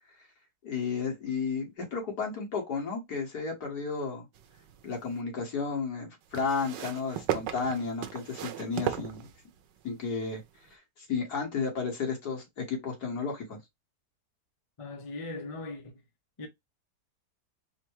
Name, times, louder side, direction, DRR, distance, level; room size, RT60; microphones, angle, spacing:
voice 1, 0.6-4.3 4.8-9.3 9.8-10.4 10.7-13.6, left 5 dB, 65° left, 2.2 m, -33 dB
sound 1, 4.4-5.2 6.3-9.8 10.7-10.8, right 10 dB, 85° right, 1.3 m, -36 dB
voice 2, 14.8-16.0 16.4-16.5, left 2 dB, 40° left, 0.5 m, -39 dB
4.4 x 2.2 x 4.5 m
omnidirectional pair, 1.8 m